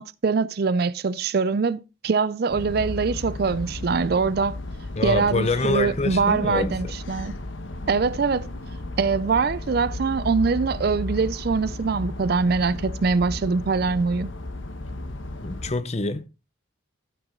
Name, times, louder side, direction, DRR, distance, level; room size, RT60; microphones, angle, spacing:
voice 1, 0.0-4.6 5.0-7.3 7.9-8.5 9.0-14.3, right 4 dB, 50° right, 0.4 m, -23 dB
sound 1, 2.5-15.7, left 2 dB, 75° left, 1.1 m, -34 dB
voice 2, 5.0-6.9 15.4-16.3, left 3 dB, 30° left, 0.7 m, -26 dB
14.0 x 5.9 x 3.7 m
head